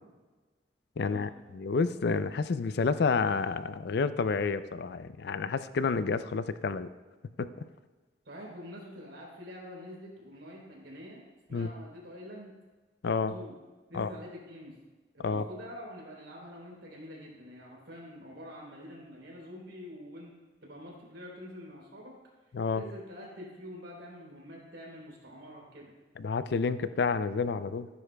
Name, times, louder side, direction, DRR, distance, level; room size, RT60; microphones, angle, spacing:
voice 1, 1.0-6.9 7.4-7.5 11.5-11.7 13.0-13.3 13.9-14.1 15.2-15.4 22.5-22.8 26.2-27.9, left 4 dB, 60° left, 13 dB, 0.4 m, -29 dB
voice 2, 8.2-11.2 11.5-12.5 13.3-13.5 13.9-14.7 15.1-20.3 20.6-22.1 22.7-25.9, equal, 90° right, -3 dB, 3.4 m, -46 dB
16.0 x 9.6 x 2.2 m, 1.3 s
head